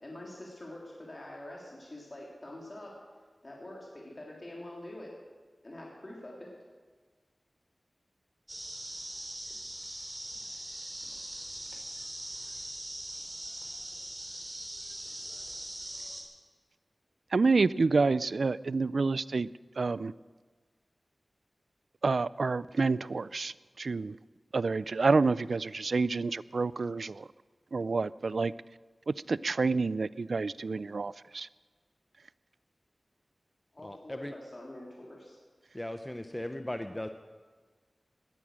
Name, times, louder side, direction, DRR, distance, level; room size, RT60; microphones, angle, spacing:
voice 1, 0.0-2.9 3.4-5.1 5.6-6.5 33.7-35.4, left 1 dB, 40° left, -3 dB, 3.5 m, -45 dB
sound 1, 8.5-16.2, right 1 dB, 25° right, 3.4 m, -41 dB
voice 2, 17.3-19.5 19.8-20.1 22.0-24.2 24.5-27.3 27.7-28.5 29.1-31.5, right 4 dB, 75° right, 19 dB, 0.4 m, -28 dB
voice 3, 33.8-34.3 35.7-37.1, left 1 dB, 15° left, 7 dB, 0.8 m, -37 dB
18.5 x 12.5 x 6.4 m, 1.4 s
wide cardioid pair, 80°, 0 cm